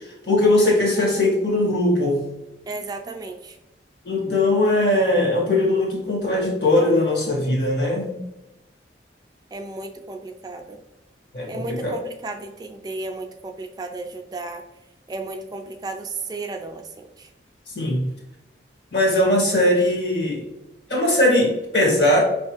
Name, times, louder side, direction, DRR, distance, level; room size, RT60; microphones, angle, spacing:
voice 1, 0.2-2.2 4.0-8.2 11.3-11.9 17.7-18.1 18.9-20.5 20.9-22.2, left 1 dB, 70° left, -2 dB, 1.5 m, -20 dB
voice 2, 2.7-3.6 9.5-10.8 11.5-14.6 15.1-17.3, right 3 dB, 20° right, 4 dB, 0.3 m, -34 dB
5.0 x 3.1 x 2.9 m, 0.94 s
head